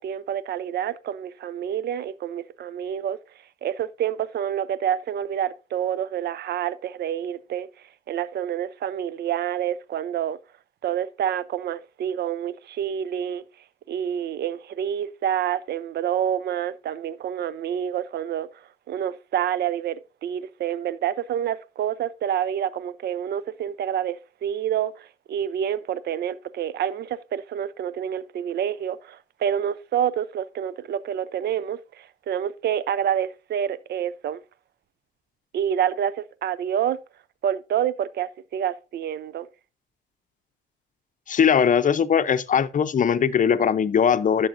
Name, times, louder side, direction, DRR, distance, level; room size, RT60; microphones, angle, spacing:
voice 1, 0.0-3.2 3.6-7.7 8.1-10.4 10.8-13.4 13.9-18.5 18.9-34.4 35.5-37.0 37.4-39.5, right 9 dB, 55° right, 0.6 m, -28 dB
voice 2, 41.3-44.5, left 7 dB, 40° left, 0.7 m, -20 dB
11.5 x 6.9 x 2.6 m
cardioid pair, 90°, 20 cm